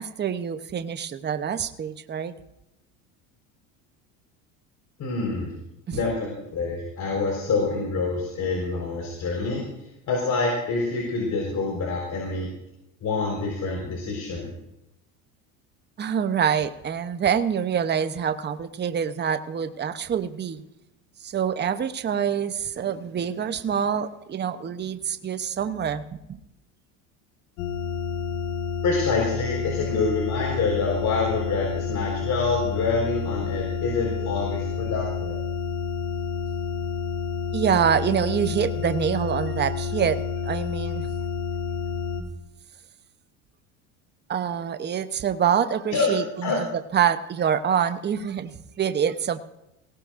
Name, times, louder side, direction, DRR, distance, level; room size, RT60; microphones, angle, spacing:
voice 1, 0.0-2.3 5.9-6.0 16.0-20.6 21.2-26.4 37.5-41.1 44.3-46.7 46.9-49.4, right 8 dB, 25° right, 10 dB, 0.9 m, -26 dB
voice 2, 5.0-5.5 5.9-9.6 10.1-12.5 13.0-14.5 28.8-35.4 45.9-46.1 46.4-46.6, left 4 dB, 50° left, -2 dB, 4.7 m, -26 dB
sound 1, 27.6-42.2, left 5 dB, 80° left, 1.9 m, -29 dB
20.0 x 17.5 x 2.6 m, 0.89 s
supercardioid pair, 95°, 39 cm